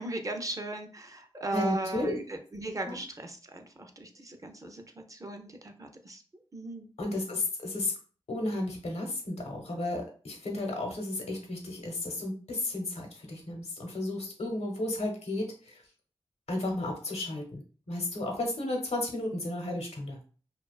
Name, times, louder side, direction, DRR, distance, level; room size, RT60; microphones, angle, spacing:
voice 1, 0.0-6.2 6.5-6.9, right 2 dB, 30° right, 5 dB, 0.4 m, -38 dB
voice 2, 1.5-2.2 2.9-3.0 7.0-7.9 8.3-15.8 16.5-17.6 17.9-20.2, left 2 dB, 80° left, 2 dB, 0.7 m, -33 dB
2.5 x 2.2 x 2.3 m, 0.39 s
cardioid pair, 45°, 11 cm